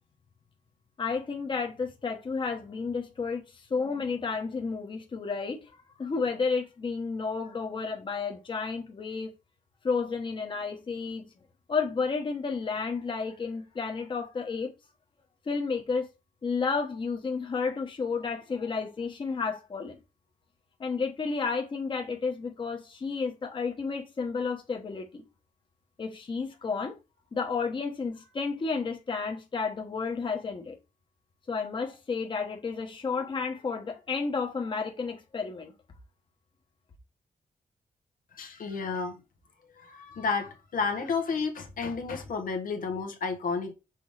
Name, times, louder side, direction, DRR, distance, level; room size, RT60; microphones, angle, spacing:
voice 1, 1.0-3.4 3.7-5.6 6.0-9.3 9.8-11.2 11.7-14.7 15.5-16.1 16.4-20.0 20.8-25.2 26.0-26.9 27.3-30.8 31.5-35.7, left 4 dB, 35° left, 1.2 m, -31 dB
voice 2, 38.3-39.2 39.7-43.7, left 4 dB, 80° left, 1.5 m, -31 dB
6.3 x 3.7 x 4.8 m
wide cardioid pair, 170°, 14 cm